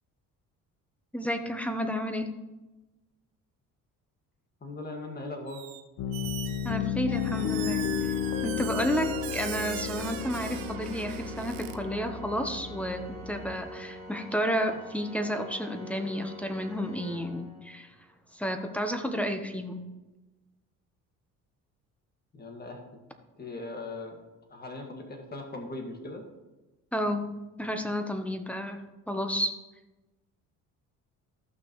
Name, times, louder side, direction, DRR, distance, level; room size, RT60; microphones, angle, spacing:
voice 1, 1.1-2.3 6.6-8.1 8.4-17.9 18.3-19.9 26.9-27.3 27.6-28.8 29.1-29.5, equal, 5° left, 6 dB, 0.9 m, -31 dB
voice 2, 4.6-5.6 22.3-22.8 23.4-24.2 24.5-26.2, left 2 dB, 30° left, 2 dB, 1.9 m, -39 dB
Squeak, 5.5-5.8 6.1-11.8, right 11 dB, 85° right, 0.8 m, -41 dB
Piano, 6.0-13.5, left 8 dB, 75° left, 0.9 m, -33 dB
Organ, 7.0-18.0, left 1 dB, 20° right, 3.4 m, -45 dB
14.0 x 6.0 x 3.1 m, 1.1 s
cardioid pair, 105°, 34 cm